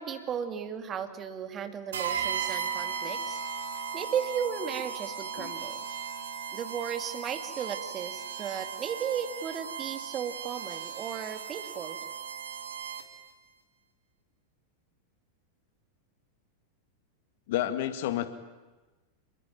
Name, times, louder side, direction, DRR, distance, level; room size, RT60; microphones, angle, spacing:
voice 1, 0.0-3.4 3.9-5.8 6.5-12.0, right 8 dB, 25° right, 8 dB, 2.6 m, -35 dB
sound 1, 1.9-13.3, right 7 dB, 65° right, 2.6 m, -36 dB
voice 2, 17.5-18.3, left 12 dB, 50° left, 11 dB, 1.9 m, -30 dB
27.5 x 22.0 x 9.0 m, 1.2 s
figure-of-eight pair, 90°, 0 cm